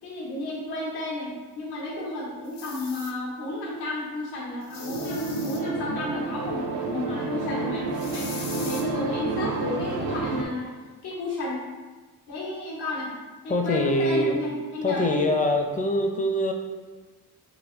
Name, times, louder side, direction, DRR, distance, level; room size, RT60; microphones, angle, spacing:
voice 1, 0.0-7.8 8.1-8.3 8.6-10.7 11.0-11.6 12.3-13.1 13.4-15.2, left 2 dB, 85° left, -6 dB, 1.1 m, -32 dB
sound 1, 2.5-3.1 4.6-5.6 7.9-8.8, left 5 dB, 60° left, 0.6 m, -40 dB
sound 2, 4.7-10.5, right 3 dB, 75° right, 0.6 m, -30 dB
voice 2, 13.5-14.4 14.8-16.5, left 1 dB, 20° left, 3 dB, 0.5 m, -24 dB
3.1 x 3.0 x 3.0 m, 1.3 s
cardioid pair, 70°, 39 cm